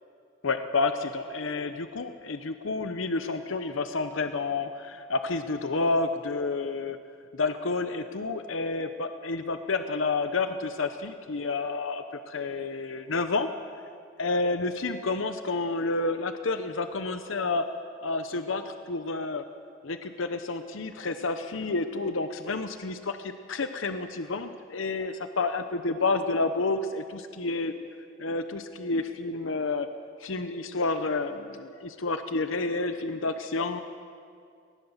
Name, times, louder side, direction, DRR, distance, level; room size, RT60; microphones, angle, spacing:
voice 1, 0.4-7.0 7.3-13.5 14.2-17.6 18.0-19.4 19.8-27.7 28.2-29.9 30.2-33.8, left 3 dB, 80° left, 9 dB, 0.9 m, -30 dB
19.5 x 19.0 x 7.3 m, 2.3 s
head